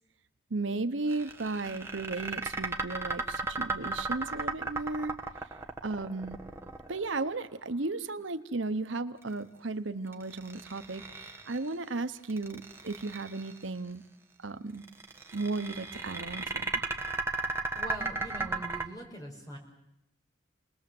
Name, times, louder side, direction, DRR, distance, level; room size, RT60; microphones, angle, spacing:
voice 1, 0.5-5.2 5.8-6.4 6.9-14.0 14.4-14.8 15.3-16.8, right 3 dB, 80° right, 10 dB, 1.1 m, -35 dB
sound 1, 1.1-7.3 10.1-11.7 12.2-13.6 14.8-18.8, right 3 dB, 15° right, 1.4 m, -35 dB
voice 2, 17.4-19.6, right 1 dB, 20° left, 0 dB, 5.7 m, -43 dB
29.5 x 20.5 x 7.9 m, 0.83 s
head